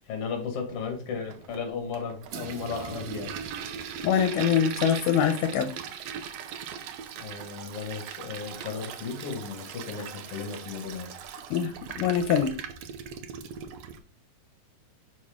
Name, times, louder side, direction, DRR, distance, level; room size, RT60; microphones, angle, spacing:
voice 1, 0.1-3.3 7.2-11.1, left 5 dB, 50° left, 3 dB, 2.6 m, -35 dB
Toilet flush, 1.3-14.0, right 8 dB, 85° right, 1.4 m, -39 dB
voice 2, 4.0-5.7 11.5-12.5, left 8 dB, 80° left, 7 dB, 2.3 m, -24 dB
6.2 x 6.0 x 3.7 m, 0.37 s
omnidirectional pair, 3.7 m